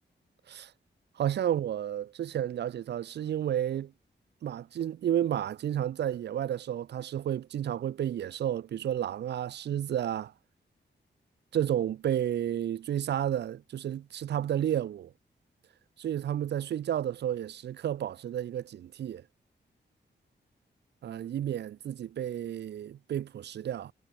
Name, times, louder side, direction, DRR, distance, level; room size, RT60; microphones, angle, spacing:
voice 1, 1.2-3.9 4.4-10.3 11.5-15.1 16.0-19.2 21.0-23.9, right 10 dB, 65° right, 0.4 m, -31 dB
wide cardioid pair, 125°, 19 cm